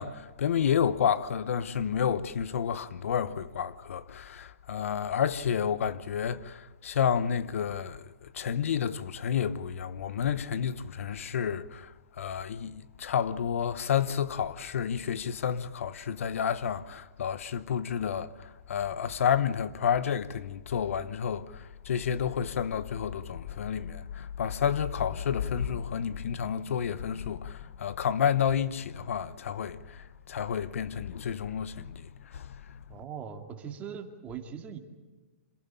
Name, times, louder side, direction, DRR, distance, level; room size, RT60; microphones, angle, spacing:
voice 1, 0.0-32.8, left 8 dB, 70° left, 1.0 m, -30 dB
voice 2, 32.9-34.8, right 7 dB, 20° right, 2.3 m, -40 dB
26.5 x 16.0 x 8.8 m
hypercardioid pair, 155°, 8 cm